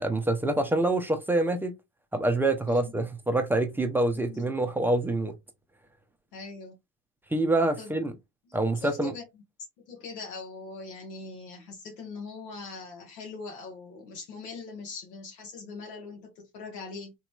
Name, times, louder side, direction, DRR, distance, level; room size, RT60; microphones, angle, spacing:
voice 1, 0.0-1.7 2.1-5.3 7.3-8.1 8.5-9.1, right 2 dB, 5° right, 0.4 m, -26 dB
voice 2, 6.3-6.8 7.8-8.1 8.5-9.2 9.8-17.1, left 4 dB, 85° left, 1.1 m, -42 dB
3.0 x 2.9 x 2.2 m
hypercardioid pair, 80°, 48 cm